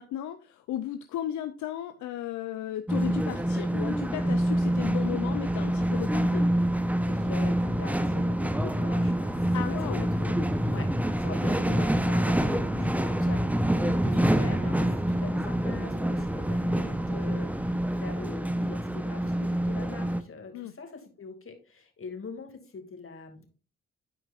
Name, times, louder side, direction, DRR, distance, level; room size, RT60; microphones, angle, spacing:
voice 1, 0.0-6.5 9.5-10.1 20.5-20.7, left 11 dB, 80° left, 8 dB, 0.6 m, -35 dB
sound 1, 2.9-20.2, right 1 dB, 5° right, 0.9 m, -26 dB
voice 2, 7.1-9.8 10.1-10.9 11.2-23.5, left 4 dB, 45° left, 4 dB, 2.4 m, -43 dB
13.5 x 4.6 x 2.5 m, 0.36 s
supercardioid pair, 45°, 29 cm